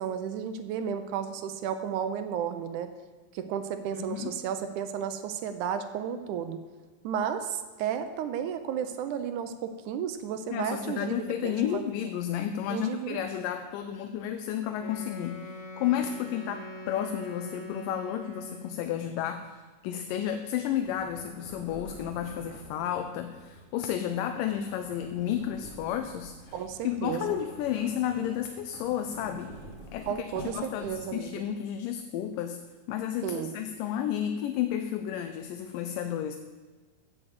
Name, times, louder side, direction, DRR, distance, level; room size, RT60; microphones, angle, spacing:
voice 1, 0.0-2.9 3.3-6.6 7.0-11.8 12.7-13.2 26.5-27.4 30.1-31.4 33.2-33.6, right 8 dB, 75° right, 9 dB, 1.9 m, -33 dB
voice 2, 3.9-4.4 10.5-26.6 26.8-29.6 29.9-30.1 30.4-32.6 32.9-36.4, left 10 dB, 80° left, 8 dB, 2.2 m, -32 dB
Wind instrument woodwind instrument, 14.8-18.9, left 1 dB, 65° left, 2.7 m, -43 dB
sound 1, 20.4-31.4, equal, 25° left, 2.2 m, -48 dB
8.6 x 7.9 x 7.7 m, 1.3 s
omnidirectional pair, 3.9 m